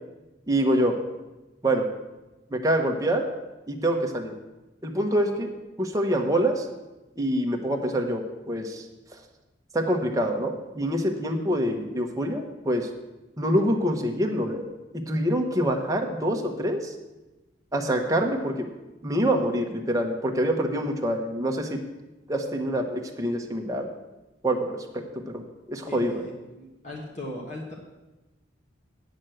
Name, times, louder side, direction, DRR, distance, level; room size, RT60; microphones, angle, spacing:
voice 1, 0.5-1.0 1.6-1.9 2.5-3.3 3.7-4.3 4.8-5.5 5.8-6.7 7.2-8.8 9.7-12.9 13.4-14.6 14.9-16.9 17.7-18.7 19.0-21.8 22.3-23.9 24.4-25.0 25.3-26.3, right 1 dB, 20° right, 2 dB, 1.0 m, -25 dB
voice 2, 25.8-27.7, left 1 dB, 35° left, -3 dB, 1.3 m, -38 dB
8.9 x 6.3 x 7.8 m, 1.1 s
head